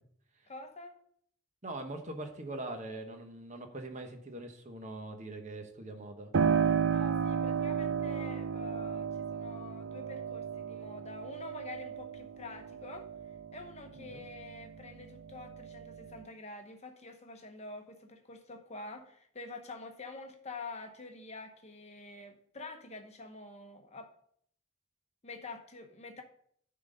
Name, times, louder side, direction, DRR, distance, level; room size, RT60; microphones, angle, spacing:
voice 1, 0.5-0.9 6.8-13.1 13.5-24.1 25.2-26.2, left 3 dB, 30° left, 5 dB, 0.9 m, -47 dB
voice 2, 1.6-6.3 14.1-14.3, right 2 dB, 35° right, 5 dB, 1.0 m, -42 dB
Piano, 6.3-14.8 15.2-16.2, right 7 dB, 60° right, 0.5 m, -33 dB
10.0 x 3.9 x 5.2 m, 0.64 s
head